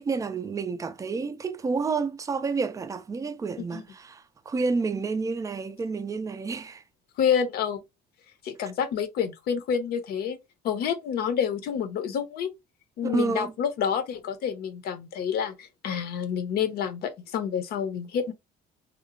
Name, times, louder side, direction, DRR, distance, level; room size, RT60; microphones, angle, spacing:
voice 1, 0.0-6.8 13.0-13.5, right 4 dB, 20° right, 0.3 m, -29 dB
voice 2, 7.2-7.8 8.4-10.4 10.6-12.5 13.0-18.3, left 8 dB, 65° left, 0.6 m, -28 dB
2.9 x 2.0 x 2.4 m
cardioid pair, 110°, 17 cm